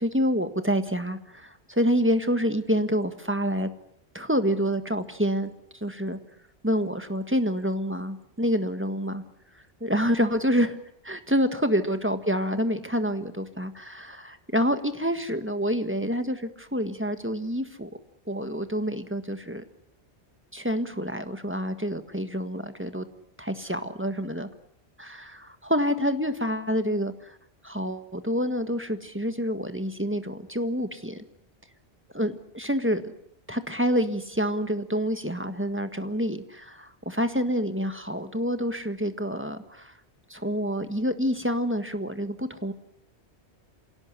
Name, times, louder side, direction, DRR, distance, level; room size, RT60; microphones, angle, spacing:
voice 1, 0.0-3.7 4.1-6.2 6.6-9.2 9.8-10.8 11.0-17.9 18.3-19.6 20.5-23.0 23.4-24.5 25.0-27.4 27.6-31.2 32.1-33.0 33.5-39.9 40.3-42.7, equal, 10° right, 9 dB, 1.6 m, -27 dB
26.5 x 17.5 x 9.7 m, 0.75 s
omnidirectional pair, 1.1 m